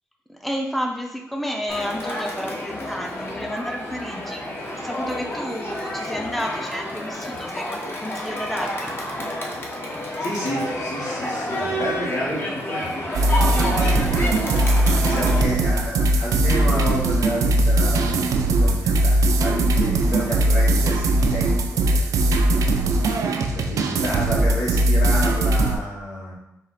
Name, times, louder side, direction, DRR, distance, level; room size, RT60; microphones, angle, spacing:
voice 1, 0.3-4.4 4.7-8.9, equal, ahead, 2 dB, 0.5 m, -31 dB
Crowd, 1.7-15.4, left 1 dB, 45° left, 1.0 m, -29 dB
voice 2, 10.2-13.1 13.3-26.3, equal, 85° left, -5 dB, 1.4 m, -31 dB
sound 1, 13.1-25.8, right 2 dB, 80° right, 0.4 m, -20 dB
4.2 x 2.4 x 4.0 m, 0.86 s
cardioid pair, 70°, 6 cm